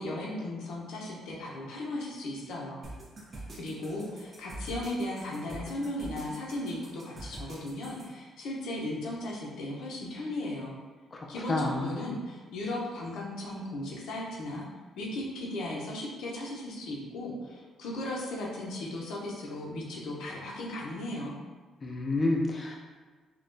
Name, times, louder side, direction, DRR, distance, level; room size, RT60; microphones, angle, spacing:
voice 1, 0.0-2.8 3.6-10.8 11.3-14.7 15.0-21.4, left 1 dB, 80° left, -2 dB, 0.7 m, -36 dB
sound 1, 2.8-8.1, right 1 dB, 45° right, 0.9 m, -44 dB
voice 2, 11.1-11.9 21.8-22.8, left 2 dB, 35° left, -1 dB, 0.4 m, -29 dB
3.7 x 2.3 x 2.6 m, 1.4 s
cardioid pair, 90°, 0 cm